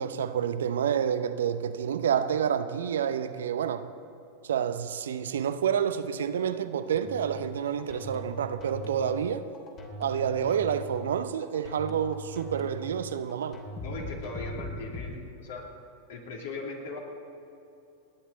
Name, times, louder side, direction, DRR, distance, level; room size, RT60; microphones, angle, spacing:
voice 1, 0.0-3.9 4.4-9.4 10.0-13.6, right 8 dB, 65° right, 10 dB, 0.7 m, -29 dB
sound 1, 6.9-15.1, equal, 35° left, 2.9 m, -41 dB
voice 2, 13.8-15.7 16.1-17.0, left 3 dB, 55° left, 0 dB, 3.0 m, -39 dB
29.5 x 10.5 x 4.1 m, 2.8 s
figure-of-eight pair, 90°, 0 cm